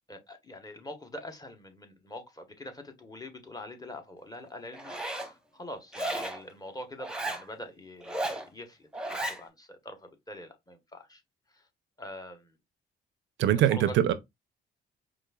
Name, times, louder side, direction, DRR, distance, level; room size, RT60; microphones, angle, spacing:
voice 1, 0.1-11.2 11.5-11.6 12.0-12.5 13.6-13.9, left 1 dB, 20° left, 0.9 m, -44 dB
Zipper (clothing), 4.7-5.3 5.9-6.4 7.0-7.4 8.0-8.4 8.9-9.4, right 1 dB, 5° right, 0.8 m, -34 dB
voice 2, 13.4-14.1, right 11 dB, 70° right, 0.4 m, -23 dB
4.8 x 2.4 x 2.2 m
cardioid pair, 90°, 20 cm